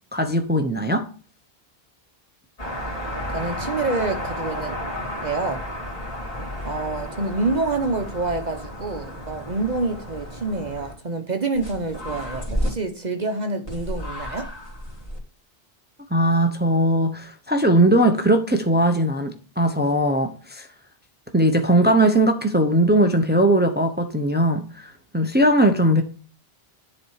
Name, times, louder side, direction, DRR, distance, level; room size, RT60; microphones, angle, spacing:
voice 1, 0.1-1.1 16.1-20.7 21.3-26.0, right 1 dB, 10° right, 0.8 m, -19 dB
sound 1, 2.6-10.9 11.5-12.7 13.7-15.2, left 1 dB, 35° left, 2.7 m, -32 dB
voice 2, 3.3-4.8 5.2-5.6 6.6-14.5, right 3 dB, 45° right, 1.0 m, -27 dB
10.5 x 4.2 x 4.7 m
omnidirectional pair, 1.1 m